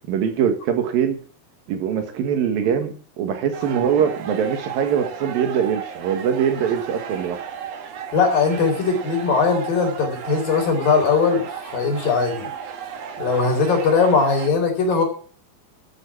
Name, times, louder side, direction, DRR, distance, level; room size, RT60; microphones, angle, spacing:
voice 1, 0.1-1.2 1.7-7.4, right 8 dB, 70° right, 7 dB, 3.2 m, -22 dB
sound 1, 3.5-14.5, right 8 dB, 55° right, 2.1 m, -34 dB
voice 2, 8.1-12.5 13.2-15.0, left 5 dB, 65° left, 3 dB, 5.3 m, -20 dB
12.5 x 9.2 x 6.0 m, 0.41 s
omnidirectional pair, 4.4 m